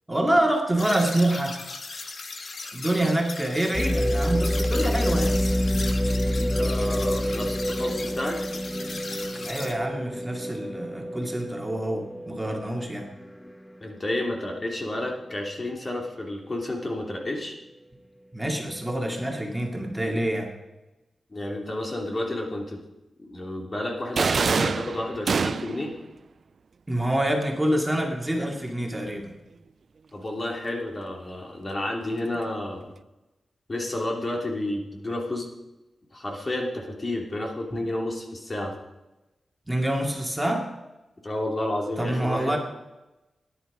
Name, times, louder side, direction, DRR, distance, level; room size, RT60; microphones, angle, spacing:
voice 1, 0.1-1.6 2.7-5.4 9.4-13.1 18.3-20.5 26.9-29.3 37.7-37.8 39.7-40.7 42.0-42.6, right 1 dB, 10° right, 1 dB, 2.4 m, -26 dB
sound 1, 0.8-9.7, left 3 dB, 55° left, 1.5 m, -37 dB
sound 2, 3.7-13.7 14.2-14.3 14.9-15.3, equal, 10° left, 1.1 m, -27 dB
voice 2, 6.5-8.4 13.8-17.5 21.3-22.8 23.2-25.9 30.1-32.9 33.7-35.5 36.1-38.7 41.2-42.6, left 1 dB, 35° left, 1 dB, 2.8 m, -31 dB
sound 3, 24.2-25.9, right 5 dB, 60° right, 0.3 m, -25 dB
17.5 x 10.5 x 5.0 m, 1.0 s
cardioid pair, 75°, 0 cm